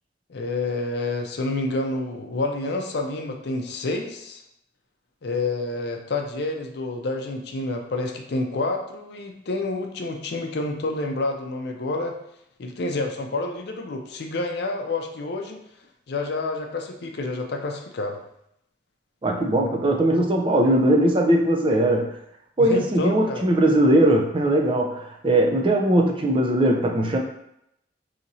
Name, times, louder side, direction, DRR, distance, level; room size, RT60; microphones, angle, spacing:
voice 1, 0.3-4.4 5.2-12.1 12.6-15.6 16.1-18.2 22.6-23.4, left 2 dB, 60° left, 3 dB, 0.5 m, -28 dB
voice 2, 19.2-22.1 22.6-27.2, right 1 dB, 30° right, 2 dB, 0.4 m, -20 dB
4.1 x 2.8 x 2.6 m, 0.77 s
head